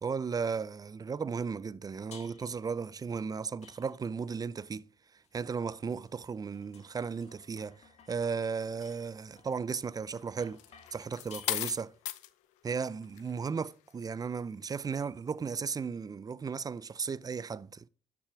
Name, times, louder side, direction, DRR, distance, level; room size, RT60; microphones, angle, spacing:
voice 1, 0.0-4.9 5.3-10.6 10.9-11.9 12.6-17.9, right 5 dB, 30° right, 0.5 m, -35 dB
sound 1, 2.1-2.7 3.6-4.3 5.2-12.1, left 7 dB, 65° left, 1.6 m, -59 dB
sound 2, 10.6-12.3 13.0-13.3, left 15 dB, 85° left, 0.6 m, -35 dB
12.5 x 6.1 x 4.8 m
supercardioid pair, 70°, 12 cm